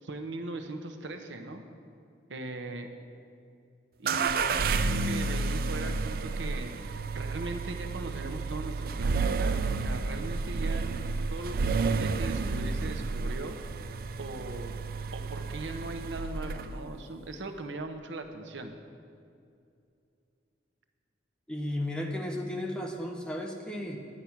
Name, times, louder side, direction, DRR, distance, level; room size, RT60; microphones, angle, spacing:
voice 1, 0.0-1.6 2.3-2.9 4.0-13.6 14.2-14.7 15.1-18.7, right 2 dB, 80° right, 5 dB, 0.9 m, -39 dB
sound 1, 4.1-16.9, right 4 dB, 50° right, 0.4 m, -31 dB
voice 2, 21.5-24.0, left 1 dB, 5° left, 1 dB, 0.9 m, -34 dB
10.0 x 9.7 x 5.9 m, 2.5 s
head